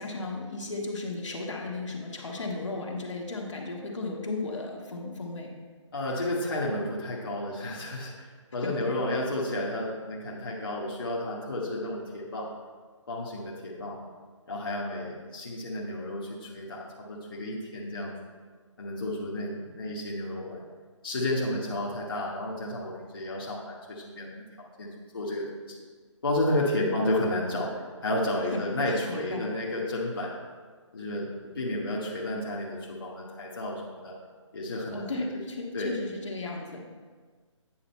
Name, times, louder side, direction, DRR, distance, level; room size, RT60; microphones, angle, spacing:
voice 1, 0.0-5.5 8.6-8.9 26.8-26.9 28.5-29.5 34.9-36.8, left 2 dB, 65° left, -1 dB, 1.4 m, -35 dB
voice 2, 5.9-12.5 13.1-14.0 14.5-18.1 18.8-20.6 21.0-25.8 26.2-30.3 30.9-34.1 34.5-35.1 35.7-36.0, left 1 dB, 45° left, -5 dB, 1.2 m, -32 dB
8.8 x 4.9 x 4.3 m, 1.5 s
hypercardioid pair, 175°, 16 cm